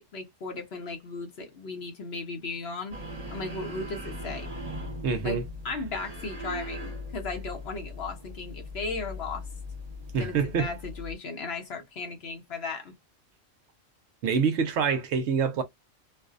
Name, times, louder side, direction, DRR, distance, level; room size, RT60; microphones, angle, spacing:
voice 1, 0.1-2.9 3.3-4.5 5.2-5.4 5.6-9.4 10.2-12.9, left 4 dB, 60° left, 0.9 m, -36 dB
sound 1, 2.9-11.1, left 1 dB, 30° right, 1.0 m, -39 dB
voice 2, 5.0-5.4 5.7-5.8 6.5-6.6 10.1-10.8 14.2-15.6, right 6 dB, 70° right, 0.8 m, -26 dB
2.5 x 2.0 x 2.4 m
omnidirectional pair, 1.3 m